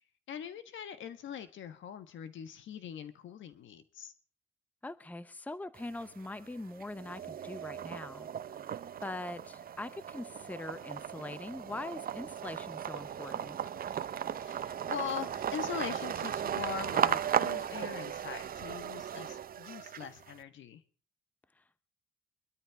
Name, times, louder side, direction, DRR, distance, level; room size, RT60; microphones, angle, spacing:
voice 1, 0.3-4.1 14.4-20.8, left 8 dB, 75° left, 11 dB, 1.5 m, -42 dB
voice 2, 4.8-13.6 21.6-21.8, left 2 dB, 10° left, 15 dB, 0.7 m, -43 dB
sound 1, 5.8-6.4 6.8-20.3, right 9 dB, 45° right, 0.7 m, -36 dB
23.5 x 13.0 x 3.6 m, 0.36 s
cardioid pair, 90°, 20 cm